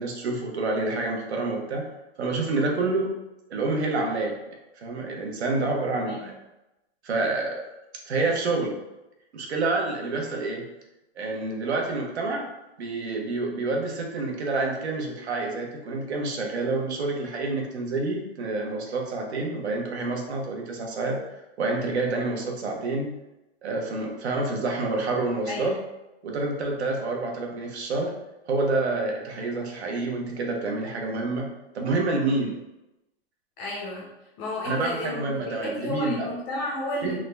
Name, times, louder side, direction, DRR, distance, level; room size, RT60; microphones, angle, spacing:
voice 1, 0.0-1.8 2.2-3.1 3.5-4.4 4.8-6.3 7.0-7.6 8.0-8.8 9.3-10.6 11.2-12.5 12.8-21.2 21.6-23.1 23.6-25.7 26.2-28.1 28.5-31.5 31.7-32.6 34.6-36.3 37.0-37.2, right 3 dB, 85° right, 1 dB, 1.0 m, -28 dB
voice 2, 5.9-6.3 25.5-25.8 33.6-34.1 34.4-37.2, left 1 dB, 20° left, -3 dB, 0.5 m, -32 dB
3.7 x 2.1 x 3.3 m, 0.96 s
hypercardioid pair, 155°, 32 cm